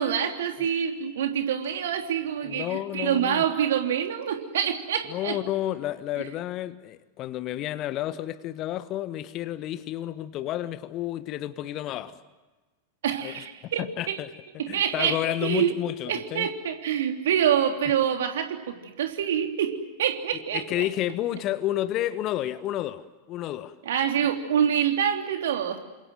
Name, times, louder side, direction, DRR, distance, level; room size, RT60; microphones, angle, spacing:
voice 1, 0.0-5.4 13.0-14.2 14.6-15.7 16.1-20.9 23.8-25.8, right 9 dB, 60° right, 3.2 m, -26 dB
voice 2, 2.4-3.4 5.1-12.2 13.2-14.3 14.7-16.5 20.3-23.8, left 13 dB, 35° left, 1.4 m, -31 dB
29.0 x 26.5 x 7.8 m
figure-of-eight pair, 90°, 0 cm